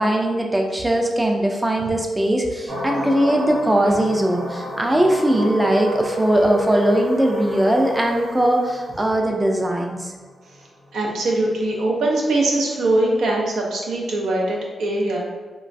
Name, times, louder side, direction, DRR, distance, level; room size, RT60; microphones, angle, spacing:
voice 1, 0.0-10.1, right 1 dB, 15° right, 2 dB, 0.3 m, -20 dB
sound 1, 2.7-11.6, equal, 65° right, 1.0 m, -30 dB
voice 2, 10.9-15.2, right 2 dB, 85° right, -1 dB, 0.5 m, -21 dB
3.0 x 2.2 x 2.5 m, 1.4 s
cardioid pair, 85°, 0 cm